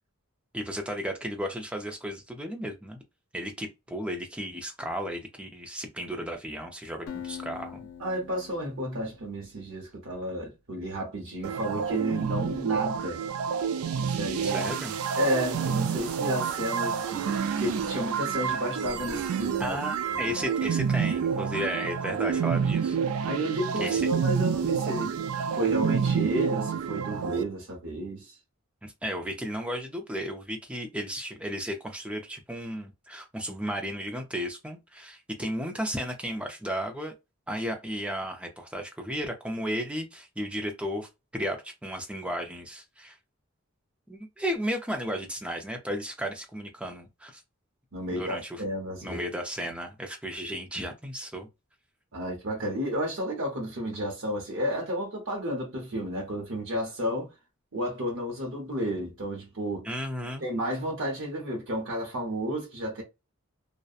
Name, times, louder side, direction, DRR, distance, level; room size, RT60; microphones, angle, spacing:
voice 1, 0.5-3.0 3.3-7.8 14.4-15.0 19.6-23.3 23.8-24.0 28.8-37.1 37.5-43.2 44.1-47.4 48.1-48.6 49.0-51.5 59.8-60.4, equal, 5° right, 0.4 m, -34 dB
Acoustic guitar, 7.1-10.1, left 8 dB, 75° left, 0.5 m, -44 dB
voice 2, 8.0-13.2 14.0-14.7 15.1-19.7 20.1-20.3 23.2-28.3 47.9-49.3 52.1-57.3 57.7-59.9 60.4-63.0, equal, 70° right, 0.9 m, -32 dB
sound 1, 11.4-27.4, right 7 dB, 85° right, 0.3 m, -28 dB
2.7 x 2.1 x 2.4 m
head